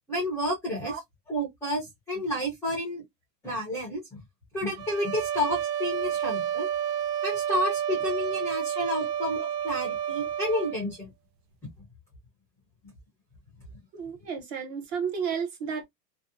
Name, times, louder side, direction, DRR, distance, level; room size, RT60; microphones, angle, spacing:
voice 1, 0.1-0.9 1.3-3.0 3.4-4.2 4.5-6.7 7.2-11.1 15.6-15.7, left 1 dB, 5° left, 0.4 m, -30 dB
sound 1, 4.8-10.8, right 10 dB, 85° right, 0.6 m, -30 dB
voice 2, 13.9-15.8, right 6 dB, 40° right, 0.6 m, -32 dB
2.7 x 2.0 x 2.5 m
supercardioid pair, 160°, 49 cm